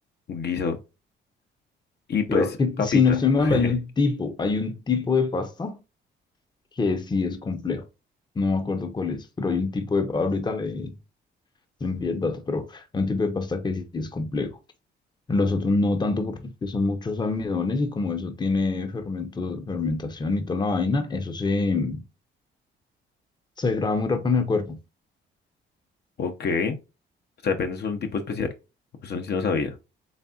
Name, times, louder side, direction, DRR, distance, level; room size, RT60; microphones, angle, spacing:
voice 1, 0.3-0.8 2.1-2.5 2.8-3.2 3.4-3.7 26.2-26.8 27.4-28.5 29.0-29.8, left 5 dB, 55° left, 0.7 m, -26 dB
voice 2, 2.3-5.8 6.8-7.8 8.4-10.9 11.8-14.6 15.3-22.0 23.6-24.8, left 4 dB, 20° left, 0.7 m, -25 dB
4.1 x 3.4 x 2.3 m
cardioid pair, 90°, 20 cm